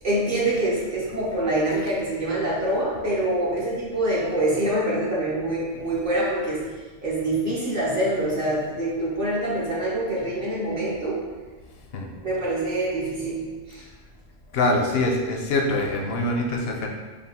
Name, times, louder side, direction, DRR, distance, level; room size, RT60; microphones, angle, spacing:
voice 1, 0.0-6.6 7.0-11.2 12.2-13.8, right 1 dB, 50° right, -7 dB, 0.9 m, -25 dB
voice 2, 14.5-16.9, left 2 dB, 65° left, 1 dB, 0.7 m, -24 dB
5.0 x 2.3 x 3.5 m, 1.4 s
omnidirectional pair, 1.3 m